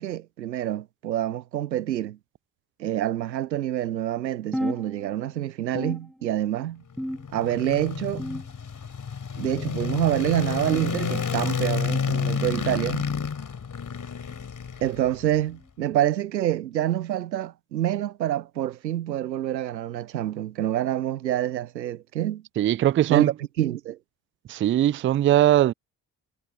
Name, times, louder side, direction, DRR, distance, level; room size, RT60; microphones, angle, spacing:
voice 1, 0.0-2.2 2.8-6.8 7.3-8.2 9.4-13.1 14.8-22.4 23.1-24.0, right 12 dB, 90° right, 0.6 m, -27 dB
sound 1, 4.5-5.4 5.8-6.6 7.0-7.6 8.2-8.8 9.4-9.8 10.6-10.9 11.9-12.1 13.1-13.3 14.3-14.5 15.5-15.7 16.7-16.9 18.0-18.1 19.2-19.3, equal, ahead, 1.1 m, -35 dB
sound 2, 6.9-15.4, left 6 dB, 40° left, 3.7 m, -30 dB
voice 2, 22.6-23.3 24.5-25.7, right 12 dB, 25° right, 0.4 m, -20 dB
figure-of-eight pair, 45°, 50 cm